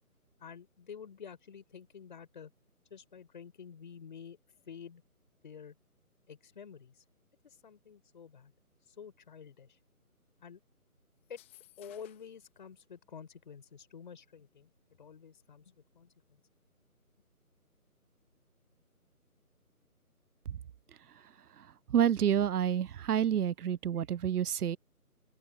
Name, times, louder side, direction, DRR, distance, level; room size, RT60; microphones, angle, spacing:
voice 1, 0.4-2.5 2.9-4.4 4.7-5.0 5.4-5.7 6.3-7.0 7.4-8.5 8.8-9.8 10.4-10.6 11.3-11.4 11.8-16.4, left 7 dB, 30° left, 5.6 m, -49 dB
sound 1, 11.2-12.4, left 16 dB, 10° left, 1.8 m, -59 dB
voice 2, 21.9-24.8, right 9 dB, 85° right, 0.6 m, -28 dB
open air
figure-of-eight pair, 165°, 45 cm